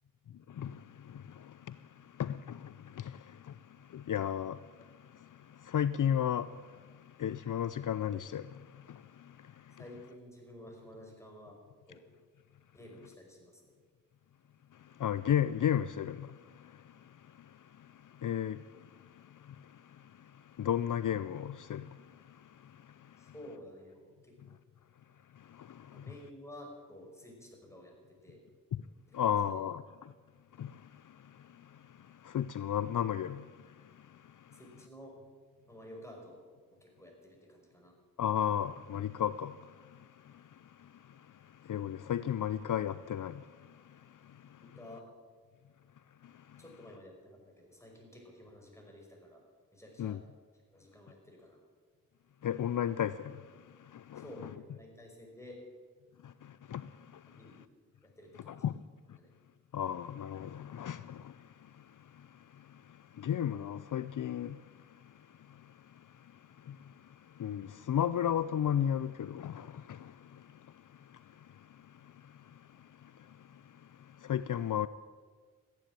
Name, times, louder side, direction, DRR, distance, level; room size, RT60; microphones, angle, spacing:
voice 1, 0.3-9.8 14.7-23.3 25.3-26.1 29.1-30.1 30.6-34.6 38.2-44.8 46.2-46.6 50.0-50.2 52.4-54.5 56.2-57.6 58.5-58.8 59.1-59.2 59.7-74.9, left 9 dB, 65° left, 0.5 m, -36 dB
voice 2, 9.8-11.6 11.9-12.0 12.7-13.7 23.2-24.0 25.9-27.9 28.2-28.4 29.1-29.6 34.5-35.1 35.7-36.4 36.8-37.9 44.6-45.0 46.6-49.4 49.7-50.2 50.7-51.6 54.2-55.6 57.3-57.6 58.2-58.7 59.2-59.3, left 1 dB, 10° left, 5.4 m, -52 dB
14.5 x 10.0 x 8.7 m
cardioid pair, 55°, 34 cm